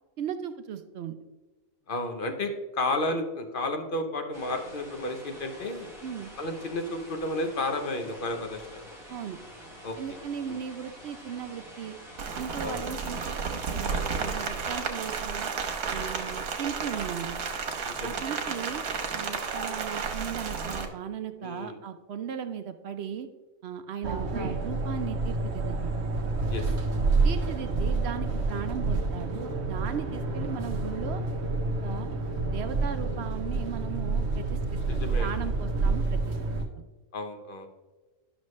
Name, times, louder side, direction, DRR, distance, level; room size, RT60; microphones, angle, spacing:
voice 1, 0.2-1.2 6.0-6.3 9.1-9.4 10.0-12.0 12.3-15.5 15.9-17.4 18.0-18.8 19.1-23.3 23.6-25.9 27.2-31.2 31.8-32.1 32.5-36.4 36.8-36.9, right 8 dB, 65° right, 8 dB, 0.6 m, -37 dB
voice 2, 1.9-5.9 6.4-8.8 9.8-10.0 10.5-10.6 12.6-13.0 13.9-14.3 17.8-18.2 21.4-21.8 26.5-26.7 34.9-35.4 37.1-37.7, left 2 dB, 45° left, 5 dB, 0.8 m, -32 dB
sound 1, 4.3-15.0, equal, ahead, 2.1 m, -47 dB
Rain, 12.2-20.9, right 5 dB, 90° right, 1.5 m, -32 dB
sound 2, 24.0-36.6, right 3 dB, 50° right, 1.2 m, -28 dB
11.0 x 6.1 x 3.1 m, 1.2 s
omnidirectional pair, 1.6 m